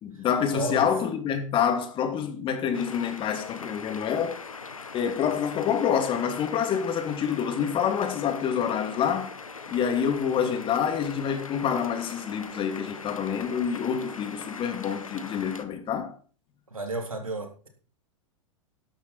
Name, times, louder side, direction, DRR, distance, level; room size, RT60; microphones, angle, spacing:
voice 1, 0.0-4.4 4.9-9.3 9.7-16.2, left 8 dB, 30° left, 2.7 m, -27 dB
voice 2, 0.5-0.9 16.7-17.7, right 2 dB, 85° right, 3.5 m, -32 dB
sound 1, 2.7-15.6, left 4 dB, 85° left, 1.5 m, -41 dB
13.0 x 11.0 x 4.4 m
figure-of-eight pair, 100°, 17 cm